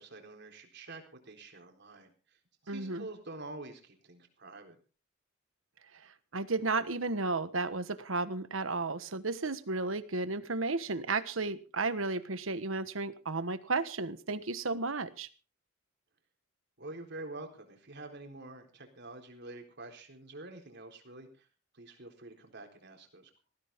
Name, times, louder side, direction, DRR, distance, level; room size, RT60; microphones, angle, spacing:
voice 1, 0.0-2.1 2.6-4.8 16.8-21.5 21.7-23.4, right 2 dB, 60° right, 4 dB, 4.0 m, -47 dB
voice 2, 2.7-3.1 6.3-15.3, right 3 dB, 85° right, 13 dB, 1.3 m, -33 dB
19.5 x 15.0 x 3.6 m, 0.35 s
head